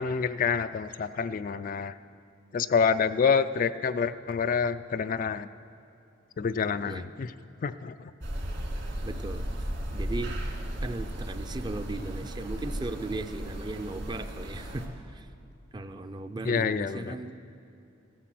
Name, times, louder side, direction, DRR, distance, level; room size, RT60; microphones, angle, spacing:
voice 1, 0.0-1.9 2.5-5.5 6.4-7.3 7.6-8.1 16.4-17.2, left 6 dB, 45° left, 11 dB, 0.3 m, -27 dB
sound 1, 8.2-14.9, equal, 60° right, 2.3 m, -35 dB
voice 2, 9.0-9.4 9.9-10.3 10.8-15.3 15.7-17.4, right 2 dB, 20° right, 9 dB, 0.5 m, -37 dB
16.0 x 10.0 x 7.5 m, 2.7 s
head